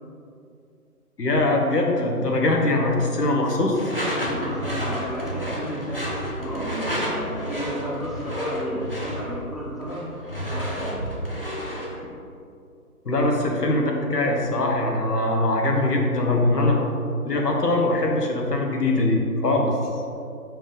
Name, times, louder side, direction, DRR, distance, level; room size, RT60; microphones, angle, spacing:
voice 1, 1.2-3.8 13.0-16.8 17.2-19.8, left 2 dB, 85° left, 0 dB, 1.3 m, -22 dB
Door / Screech, 3.7-12.0, equal, 40° left, 0.6 m, -30 dB
voice 2, 4.2-10.1 10.5-11.1 11.9-12.1 13.1-13.3, right 1 dB, ahead, -6 dB, 0.5 m, -33 dB
5.2 x 5.1 x 3.8 m, 2.5 s
figure-of-eight pair, 175°, 47 cm